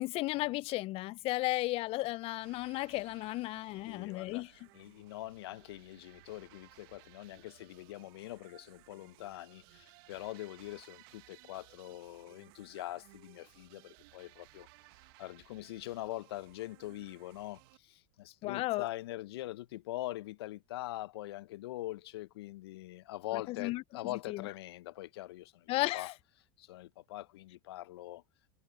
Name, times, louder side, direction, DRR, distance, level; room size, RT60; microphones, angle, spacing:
voice 1, 0.0-4.5 18.4-18.9 23.3-24.5 25.7-26.1, left 19 dB, 45° left, 0.5 m, -34 dB
sound 1, 2.4-17.8, right 25 dB, 60° right, 1.5 m, -60 dB
voice 2, 3.9-4.4 4.7-14.7 15.2-26.1 26.6-28.2, left 16 dB, 70° left, 0.9 m, -43 dB
hypercardioid pair, 85°, 14 cm